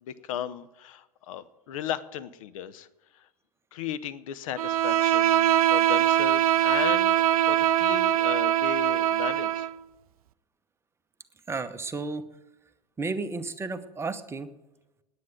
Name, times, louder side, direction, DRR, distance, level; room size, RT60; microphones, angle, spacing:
voice 1, 0.0-2.9 3.1-3.2 3.7-9.7, left 10 dB, 55° left, 14 dB, 0.8 m, -35 dB
Bowed string instrument, 4.6-9.7, right 11 dB, 65° right, 0.5 m, -22 dB
voice 2, 11.5-12.2 13.0-14.5, right 3 dB, 10° right, 9 dB, 0.9 m, -32 dB
9.6 x 9.5 x 8.7 m, 1.0 s
figure-of-eight pair, 85°, 20 cm